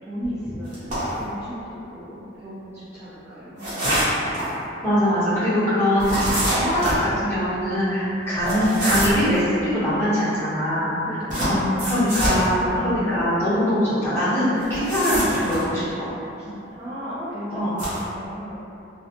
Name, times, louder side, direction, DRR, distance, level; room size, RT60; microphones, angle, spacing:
voice 1, 0.0-4.4 11.0-11.9 16.4-18.5, equal, 10° right, -14 dB, 0.4 m, -35 dB
sound 1, 0.7-1.2 3.6-4.5 6.0-7.0 8.4-9.3 11.3-12.4 14.6-15.6 17.7-18.0, right 1 dB, 40° right, 0.9 m, -25 dB
voice 2, 4.8-6.2 6.5-10.9 11.4-16.1 17.5-17.7, equal, 15° left, -15 dB, 1.0 m, -22 dB
2.5 x 2.1 x 2.8 m, 2.9 s
head